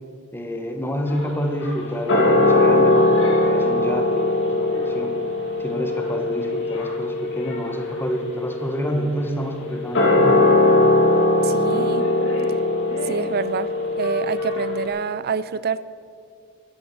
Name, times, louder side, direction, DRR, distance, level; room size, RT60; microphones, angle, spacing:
voice 1, 0.3-5.1 5.6-10.5, equal, 10° left, 4 dB, 1.5 m, -28 dB
sound 1, 1.1-14.9, left 2 dB, 60° left, 3.1 m, -20 dB
voice 2, 11.4-12.2 13.0-13.7 14.0-15.8, right 5 dB, 50° right, 16 dB, 0.5 m, -27 dB
12.5 x 10.0 x 8.1 m, 2.2 s
head